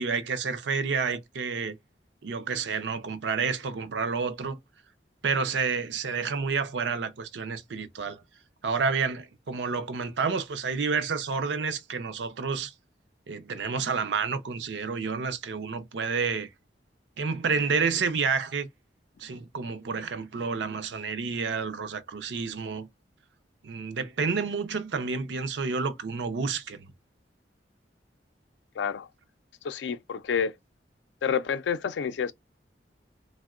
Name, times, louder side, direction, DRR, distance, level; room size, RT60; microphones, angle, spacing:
voice 1, 0.0-1.8 2.2-4.6 5.2-8.2 8.6-12.7 13.3-16.5 17.2-18.7 19.2-22.9 23.6-26.9, right 5 dB, 85° right, 0.5 m, -29 dB
voice 2, 28.8-29.1 29.6-30.5 31.2-32.3, left 7 dB, 90° left, 0.4 m, -28 dB
3.6 x 2.1 x 2.3 m
head